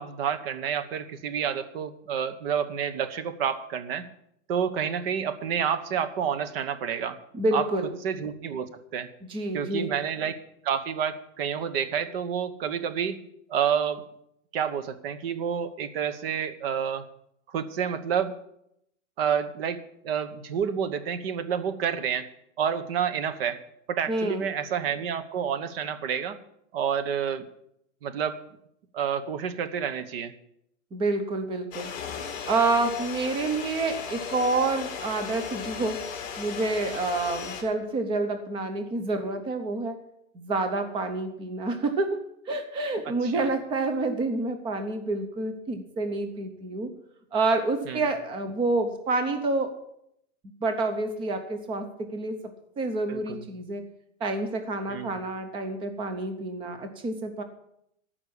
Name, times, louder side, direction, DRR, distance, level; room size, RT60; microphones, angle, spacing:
voice 1, 0.0-4.0 4.5-7.2 7.5-7.6 8.0-9.1 9.5-10.4 10.6-13.2 13.5-14.0 14.5-17.0 17.5-18.3 19.2-19.8 20.0-22.3 22.6-23.6 23.9-26.4 26.7-27.5 28.0-28.4 28.9-30.3 43.2-43.5 47.9-48.0 53.1-53.4 54.9-55.2, right 8 dB, 50° right, 12 dB, 1.1 m, -29 dB
voice 2, 7.3-7.9 9.3-9.9 24.1-24.5 30.9-31.9 32.5-36.0 36.4-40.0 40.3-42.2 42.5-46.9 47.3-49.7 50.6-52.4 52.8-53.8 54.2-57.4, right 2 dB, 15° right, 8 dB, 0.7 m, -28 dB
sound 1, 31.7-37.6, left 7 dB, 20° left, 2.8 m, -36 dB
14.0 x 5.8 x 8.4 m, 0.76 s
supercardioid pair, 165°, 38 cm